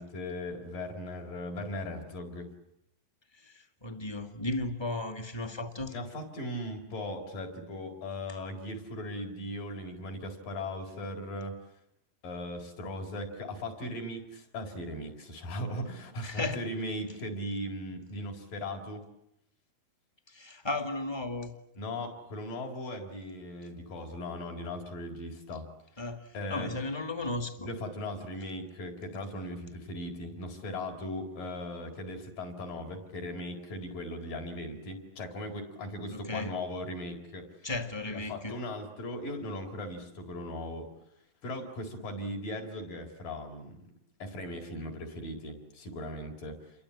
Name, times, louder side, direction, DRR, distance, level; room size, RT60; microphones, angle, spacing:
voice 1, 0.0-2.5 5.9-11.6 12.2-19.1 21.8-25.7 26.0-26.1 26.3-26.7 27.6-37.5 38.1-40.9 41.4-43.8 44.2-46.7, left 1 dB, 65° left, 3 dB, 6.0 m, -38 dB
voice 2, 3.4-5.9 16.2-16.6 20.3-21.5 26.0-27.7 36.1-36.5 37.6-38.6, left 2 dB, 15° left, 4 dB, 0.9 m, -35 dB
29.0 x 23.5 x 8.6 m, 0.80 s
omnidirectional pair, 4.2 m